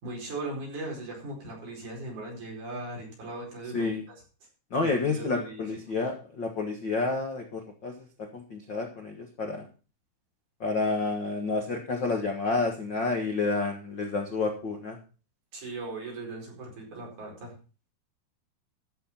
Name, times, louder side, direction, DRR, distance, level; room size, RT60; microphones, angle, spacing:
voice 1, 0.0-3.9 4.8-5.6 15.5-17.5, right 2 dB, 45° right, -1 dB, 5.9 m, -38 dB
voice 2, 3.7-4.0 4.7-9.7 10.6-15.0, left 3 dB, 80° left, 3 dB, 1.0 m, -30 dB
14.0 x 7.2 x 5.8 m, 0.36 s
omnidirectional pair, 4.9 m